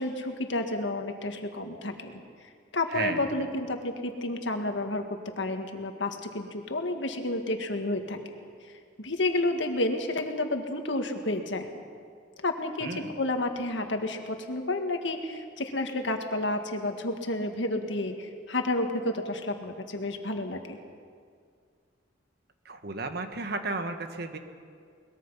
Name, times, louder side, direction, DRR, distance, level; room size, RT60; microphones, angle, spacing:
voice 1, 0.0-2.2 2.7-5.0 5.4-8.2 9.0-11.7 12.4-20.8, left 2 dB, 80° left, 5 dB, 1.8 m, -30 dB
voice 2, 2.9-3.3 12.8-13.1 22.6-24.4, right 3 dB, 60° right, 7 dB, 1.5 m, -33 dB
22.5 x 20.5 x 5.7 m, 2.2 s
head